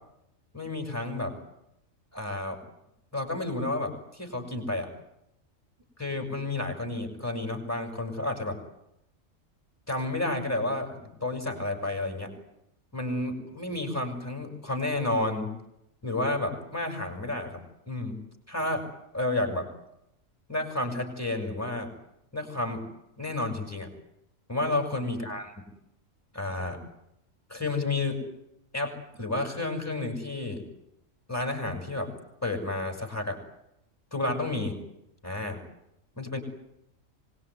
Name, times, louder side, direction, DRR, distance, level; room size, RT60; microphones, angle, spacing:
voice 1, 0.5-1.4 2.1-2.6 3.1-4.9 6.0-8.6 9.9-12.3 12.9-15.5 16.0-17.6 17.9-18.2 18.5-18.9 19.1-19.7 20.5-21.9 22.3-22.8 23.2-23.9 24.5-25.6 26.3-26.8 27.5-28.2 28.7-30.6 31.3-32.1 32.4-33.4 34.1-34.7 35.2-35.6 36.1-36.4, left 2 dB, 10° left, 5 dB, 6.5 m, -31 dB
25.0 x 21.5 x 9.7 m, 0.82 s
omnidirectional pair, 1.4 m